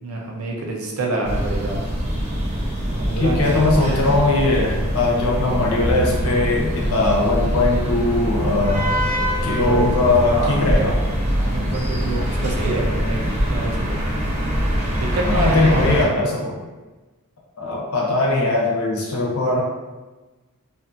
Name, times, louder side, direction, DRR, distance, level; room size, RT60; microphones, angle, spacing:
voice 1, 0.0-1.8 2.6-2.7 3.0-3.4 9.6-10.0 10.3-11.0 11.3-13.3 13.5-14.0 15.0-15.9, right 2 dB, 90° right, -1 dB, 0.6 m, -27 dB
sound 1, 1.2-16.0, equal, 35° right, 0.7 m, -23 dB
voice 2, 3.2-8.9 9.4-11.0 15.3-16.6 17.6-19.6, left 2 dB, 85° left, -2 dB, 0.7 m, -20 dB
2.6 x 2.5 x 2.5 m, 1.2 s
head